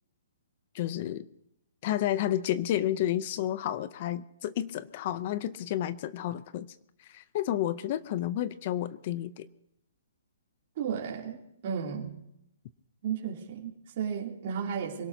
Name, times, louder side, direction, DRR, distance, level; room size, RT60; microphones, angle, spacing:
voice 1, 0.7-1.3 1.8-6.7 7.0-9.5, left 12 dB, 30° left, 15 dB, 0.5 m, -31 dB
voice 2, 10.7-11.4 11.6-12.1 13.0-15.1, right 7 dB, 35° right, -2 dB, 2.9 m, -33 dB
26.0 x 18.0 x 2.7 m, 0.79 s
hypercardioid pair, 175°, 0 cm